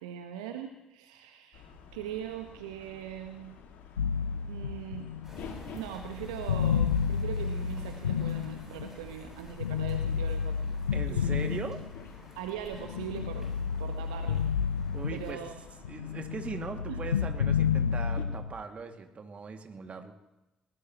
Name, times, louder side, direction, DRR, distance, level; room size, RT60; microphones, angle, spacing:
voice 1, 0.0-1.7 1.9-3.5 4.5-5.1 5.7-10.6 11.1-11.6 12.4-14.4 15.1-15.6 16.9-17.0, right 9 dB, 75° right, 6 dB, 1.2 m, -40 dB
sound 1, 1.5-18.3, left 6 dB, 60° left, 2.0 m, -51 dB
sound 2, 4.0-9.1 9.6-12.3 12.7-15.6 15.8-18.5, left 7 dB, 85° left, 0.5 m, -31 dB
sound 3, 5.2-15.4, right 1 dB, 10° right, 8.0 m, -51 dB
voice 2, 10.9-11.8 14.9-15.4 15.9-20.1, right 5 dB, 35° right, 5 dB, 2.1 m, -40 dB
23.0 x 19.5 x 3.0 m, 0.97 s
figure-of-eight pair, 45°, 4 cm